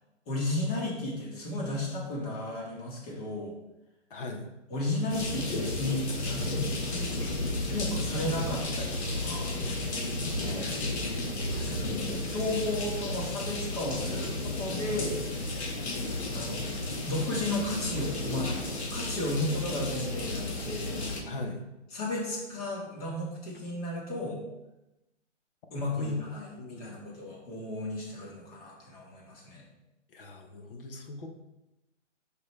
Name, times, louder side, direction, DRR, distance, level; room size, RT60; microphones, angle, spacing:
voice 1, 0.3-3.6 4.7-7.1 7.7-9.5 10.4-10.7 11.5-15.5 16.3-16.7 17.0-20.9 21.9-24.4 25.7-29.7, left 1 dB, 30° left, -3 dB, 1.9 m, -34 dB
voice 2, 4.1-4.5 6.9-7.4 9.6-9.7 10.2-10.8 11.6-11.7 21.3-21.6 26.0-26.2 26.5-27.0 30.1-31.3, left 2 dB, 50° left, 4 dB, 1.0 m, -40 dB
sound 1, 5.1-21.2, left 2 dB, 65° left, 1.6 m, -33 dB
6.7 x 5.2 x 3.2 m, 0.95 s
hypercardioid pair, 160°, 36 cm